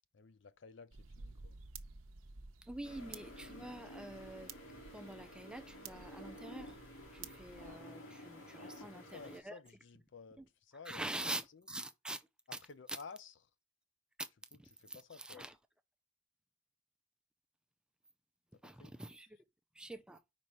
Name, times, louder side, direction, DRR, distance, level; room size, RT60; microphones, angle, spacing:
voice 1, 0.1-1.6 8.7-11.0 12.7-13.3 14.8-15.5 18.5-18.9, left 5 dB, 55° left, 0.5 m, -54 dB
sound 1, 0.9-7.8, right 5 dB, 75° right, 0.7 m, -54 dB
voice 2, 2.6-6.8 7.1-9.6 10.4-10.5 10.8-12.6 12.9-13.0 14.2-14.3 14.6-15.6 18.6-19.4 19.7-20.2, right 1 dB, 5° right, 0.4 m, -46 dB
sound 2, 2.8-9.4, equal, 75° left, 2.1 m, -52 dB
5.3 x 4.2 x 4.7 m
head